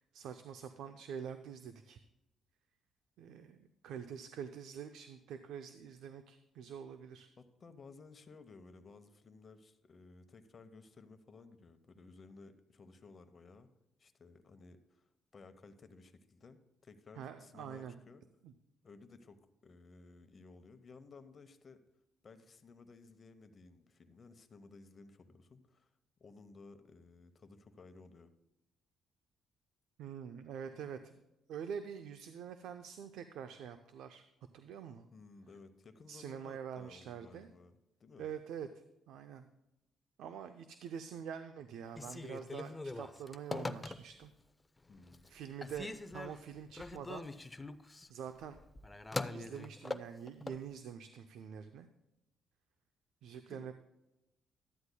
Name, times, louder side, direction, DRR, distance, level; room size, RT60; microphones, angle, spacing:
voice 1, 0.0-2.0 3.2-7.3 17.2-18.0 18.4-18.5 30.0-31.2 31.5-34.2 34.5-35.1 36.1-37.5 38.2-38.7 39.1-39.4 40.2-44.3 45.3-47.3 48.1-48.6 49.3-51.9 53.2-53.7, right 8 dB, 85° right, 9 dB, 0.5 m, -46 dB
voice 2, 7.4-13.7 14.0-15.0 15.3-18.2 18.8-21.8 22.2-25.9 26.2-28.3 35.1-38.2 44.9-45.3 53.5-53.7, left 4 dB, 40° left, 9 dB, 0.9 m, -57 dB
Telephone, 41.9-44.4 44.8-45.3 45.6-50.6, left 2 dB, 15° left, 0.5 m, -43 dB
13.0 x 9.6 x 2.2 m, 0.91 s
cardioid pair, 90°, 0 cm